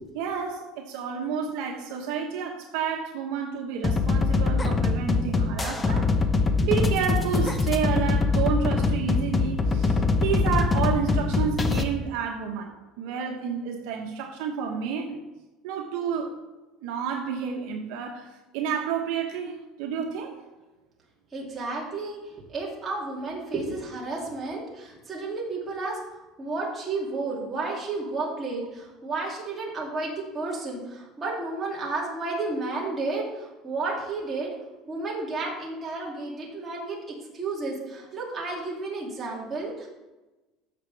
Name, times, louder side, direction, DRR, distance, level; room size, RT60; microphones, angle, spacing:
voice 1, 0.2-6.1 6.6-15.2 15.6-16.3 16.8-20.4, right 7 dB, 70° right, 2 dB, 1.2 m, -30 dB
sound 1, 3.8-11.8, left 3 dB, 15° left, 0.7 m, -23 dB
voice 2, 21.3-26.0 26.4-34.5 34.9-39.9, right 3 dB, 20° right, -4 dB, 2.6 m, -32 dB
14.5 x 6.1 x 3.4 m, 1.1 s
cardioid pair, 150°, 0 cm